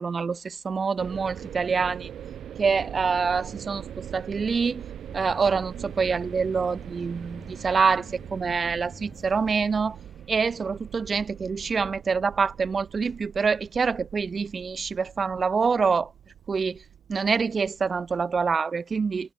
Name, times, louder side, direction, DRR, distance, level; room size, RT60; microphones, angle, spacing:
voice 1, 0.0-2.1 2.6-3.8 4.1-4.8 5.1-10.0 10.3-16.1 16.5-16.8 17.1-19.3, right 5 dB, 40° right, 0.4 m, -26 dB
sound 1, 1.0-18.6, right 10 dB, 65° right, 2.0 m, -42 dB
sound 2, 5.1-11.5, left 2 dB, 15° left, 4.2 m, -50 dB
cardioid pair, 90°, 0 cm